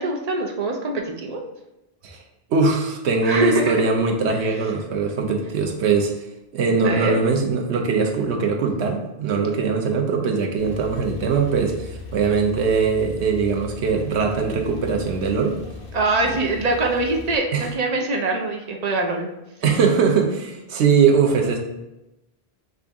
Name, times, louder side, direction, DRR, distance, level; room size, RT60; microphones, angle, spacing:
voice 1, 0.0-1.4 3.2-3.7 6.8-7.1 15.9-19.3, right 2 dB, 45° right, 2 dB, 0.6 m, -23 dB
voice 2, 2.5-6.1 6.5-15.6 17.5-17.7 19.6-21.6, right 5 dB, 90° right, 2 dB, 1.0 m, -21 dB
Male speech man speaking / Car / Idling, 10.6-17.4, left 4 dB, 65° left, 0.8 m, -38 dB
5.7 x 2.6 x 3.5 m, 0.93 s
omnidirectional pair, 1.1 m